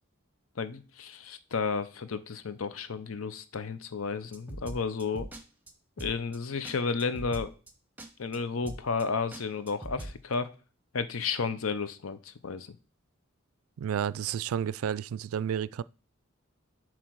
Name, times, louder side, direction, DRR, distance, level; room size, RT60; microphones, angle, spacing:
voice 1, 0.6-5.3 6.0-7.5 8.2-10.5 10.9-12.8, left 5 dB, 80° left, 0.7 m, -32 dB
sound 1, 4.3-5.4 5.7-5.8 6.0-6.4 6.6-6.7 7.0-7.7 8.0-8.1 8.3-8.4 8.6-9.0 9.3-10.2, right 1 dB, 10° right, 0.8 m, -41 dB
voice 2, 13.8-15.8, right 8 dB, 85° right, 0.3 m, -31 dB
7.5 x 3.1 x 4.7 m
head